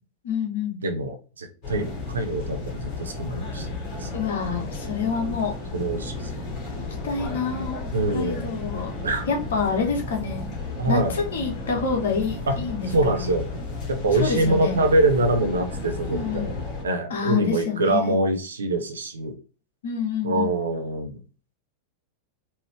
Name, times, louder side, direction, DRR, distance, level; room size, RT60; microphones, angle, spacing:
voice 1, 0.2-0.8 4.1-5.6 6.8-7.8 8.1-8.9 9.3-10.5 10.9-12.9 13.2-13.3 14.1-14.8 16.1-16.5 17.1-18.1 19.8-20.6, left 5 dB, 60° left, 2 dB, 1.4 m, -27 dB
voice 2, 0.8-3.7 4.0-4.1 5.2-5.3 5.7-6.3 7.9-8.5 9.0-9.3 10.8-11.1 12.5-12.6 12.9-13.5 13.9-16.5 16.8-19.3 20.2-21.2, right 2 dB, 70° right, 5 dB, 0.9 m, -24 dB
sound 1, 1.6-16.8, left 3 dB, 40° left, 2.2 m, -33 dB
4.5 x 3.0 x 3.2 m, 0.35 s
figure-of-eight pair, 90°, 0 cm